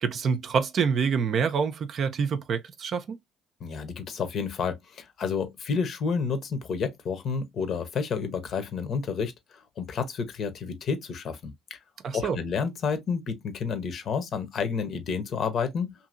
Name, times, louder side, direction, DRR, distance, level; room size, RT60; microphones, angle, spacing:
voice 1, 0.0-3.2 12.0-12.4, right 6 dB, 50° right, 0.5 m, -26 dB
voice 2, 3.6-11.8 12.1-15.9, left 5 dB, 55° left, 0.8 m, -30 dB
2.8 x 2.7 x 2.5 m
hypercardioid pair, 55°, 0 cm